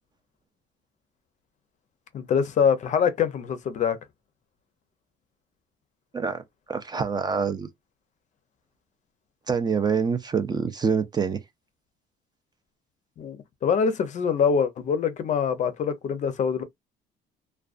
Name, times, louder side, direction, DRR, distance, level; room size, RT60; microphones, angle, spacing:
voice 1, 2.1-4.0 13.2-13.4 13.6-16.6, left 6 dB, 45° left, 0.5 m, -24 dB
voice 2, 6.7-7.7 9.5-11.4, right 5 dB, 25° right, 0.4 m, -26 dB
2.4 x 2.2 x 2.4 m
cardioid pair, 110°, 17 cm